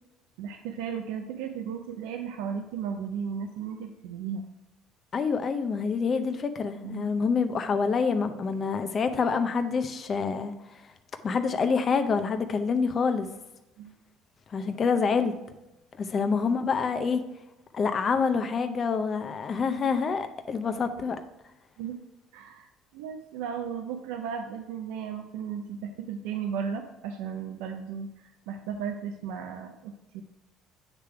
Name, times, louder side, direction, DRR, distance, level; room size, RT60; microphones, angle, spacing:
voice 1, 0.4-4.5 6.8-7.4 13.8-14.0 21.8-22.0 22.3-22.7 22.9-30.2, right 7 dB, 85° right, 5 dB, 0.5 m, -35 dB
voice 2, 5.1-10.5 11.2-13.3 14.5-15.3 16.0-17.2 17.7-21.2, left 5 dB, 40° left, 8 dB, 0.6 m, -27 dB
8.2 x 3.4 x 4.6 m, 0.92 s
supercardioid pair, 95°, 0 cm